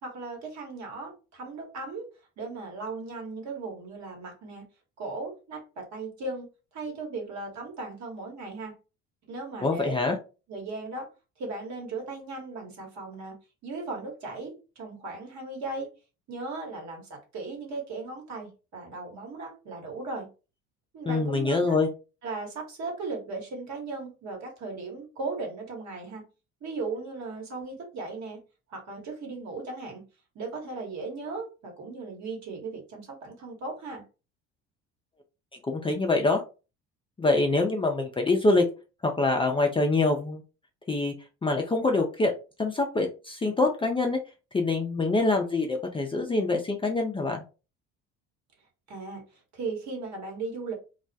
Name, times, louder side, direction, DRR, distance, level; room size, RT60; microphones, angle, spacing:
voice 1, 0.0-2.1 2.4-4.7 5.0-6.5 6.7-8.7 9.3-10.0 10.5-11.1 11.4-13.4 13.6-15.9 16.3-20.3 20.9-21.8 22.2-26.2 26.6-28.4 28.7-30.0 30.3-34.0 48.9-50.7, right 3 dB, 55° right, 1 dB, 1.2 m, -37 dB
voice 2, 9.6-10.2 21.1-21.9 35.6-36.4 37.2-38.6 39.0-40.4 40.9-41.1 41.4-42.3 42.6-44.2 44.5-47.4, left 3 dB, 15° left, 2 dB, 0.4 m, -25 dB
2.3 x 2.0 x 2.6 m, 0.32 s
hypercardioid pair, 70°, 33 cm